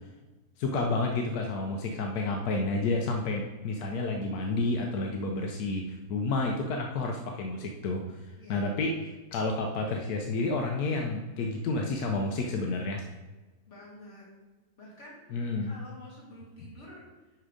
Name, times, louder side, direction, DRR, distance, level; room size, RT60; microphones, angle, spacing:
voice 1, 0.6-8.0 8.5-9.0 9.3-13.0 15.3-15.7, left 3 dB, 90° left, 2 dB, 1.3 m, -30 dB
voice 2, 8.4-8.7 13.7-14.3 14.8-17.3, left 1 dB, 50° left, -6 dB, 3.0 m, -49 dB
10.5 x 3.9 x 4.9 m, 1.2 s
omnidirectional pair, 1.6 m